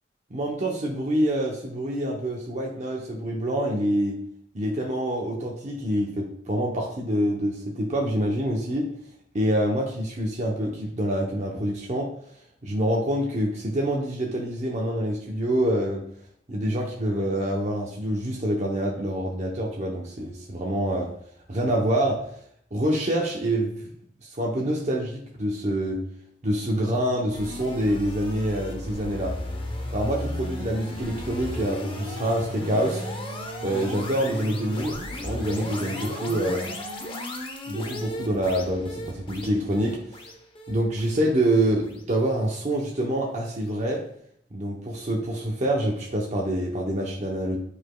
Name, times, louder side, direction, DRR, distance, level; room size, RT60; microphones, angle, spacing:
voice 1, 0.3-4.2 4.5-8.9 9.3-12.1 12.6-16.0 16.5-21.1 21.5-22.4 22.7-23.9 24.2-26.0 26.4-29.4 29.9-33.0 33.6-36.7 37.7-40.3 40.7-44.1 44.5-47.6, right 1 dB, 40° right, -1 dB, 0.8 m, -26 dB
sound 1, 27.3-42.5, left 1 dB, 30° left, 0.8 m, -35 dB
9.8 x 4.9 x 2.3 m, 0.68 s
head